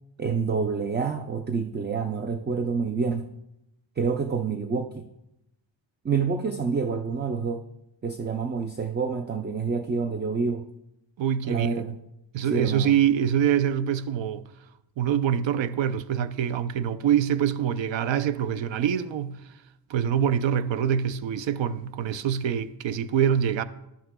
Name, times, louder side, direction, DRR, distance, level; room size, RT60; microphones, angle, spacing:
voice 1, 0.2-3.3 4.0-5.1 6.0-7.6 8.0-10.7 11.4-12.0 12.4-12.9, right 5 dB, 25° right, 0.4 m, -27 dB
voice 2, 11.2-11.7 12.3-14.4 15.0-19.4 19.9-23.6, right 9 dB, 80° right, 0.6 m, -25 dB
12.5 x 11.5 x 2.2 m
wide cardioid pair, 105°, 45 cm